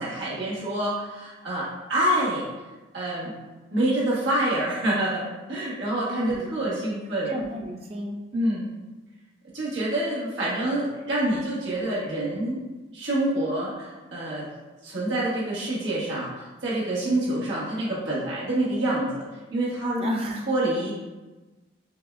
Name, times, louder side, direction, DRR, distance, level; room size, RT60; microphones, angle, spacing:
voice 1, 0.0-2.5 2.9-3.3 3.7-7.3 8.3-8.7 9.5-12.6 12.9-14.5 14.8-19.2 19.5-20.1 20.5-20.9, right 1 dB, 75° right, -7 dB, 1.2 m, -27 dB
voice 2, 6.1-6.5 7.3-8.2 20.0-20.5, equal, 30° right, 1 dB, 0.4 m, -31 dB
6.2 x 2.1 x 2.4 m, 1.2 s
head